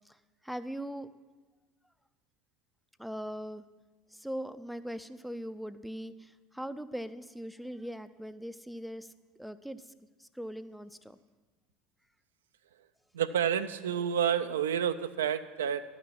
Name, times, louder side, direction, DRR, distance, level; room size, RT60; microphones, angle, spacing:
voice 1, 0.0-1.1 3.0-3.6 4.1-9.1 9.4-9.9 10.2-11.2, equal, ahead, 11 dB, 0.5 m, -40 dB
voice 2, 13.1-15.8, right 8 dB, 70° right, 11 dB, 0.4 m, -29 dB
11.5 x 6.0 x 7.4 m, 1.3 s
figure-of-eight pair, 65°, 0 cm